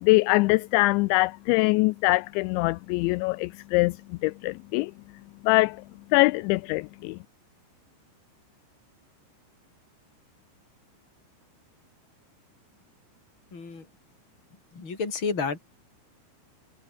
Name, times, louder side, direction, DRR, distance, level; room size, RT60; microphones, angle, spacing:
voice 1, 0.0-4.0 4.2-4.9 5.4-5.8 6.1-7.2, left 22 dB, 85° left, 2.6 m, -23 dB
voice 2, 13.5-13.9 14.7-15.6, left 5 dB, 25° left, 5.8 m, -30 dB
omnidirectional pair, 5.6 m